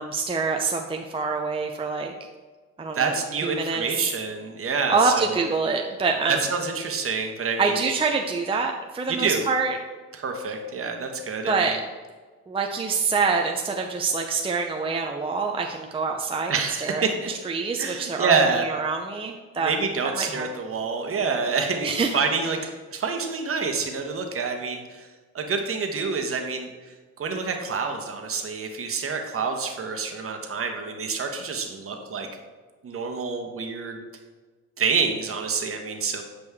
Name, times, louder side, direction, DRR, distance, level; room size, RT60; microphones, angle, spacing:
voice 1, 0.0-2.1 2.8-3.1 3.4-4.1 4.9-6.4 7.6-9.8 11.5-11.8 12.5-16.5 16.8-17.0 17.4-18.3 18.6-19.7 20.1-20.5 21.8-22.2, right 4 dB, 20° right, 2 dB, 0.6 m, -25 dB
voice 2, 2.9-5.4 6.3-7.9 9.1-9.4 10.1-11.8 16.5-17.3 17.8-18.7 19.6-22.6 22.9-25.1 25.3-32.3 32.8-34.0 34.8-36.2, right 5 dB, 45° right, 4 dB, 1.2 m, -27 dB
8.3 x 5.1 x 3.5 m, 1.3 s
cardioid pair, 90°, 30 cm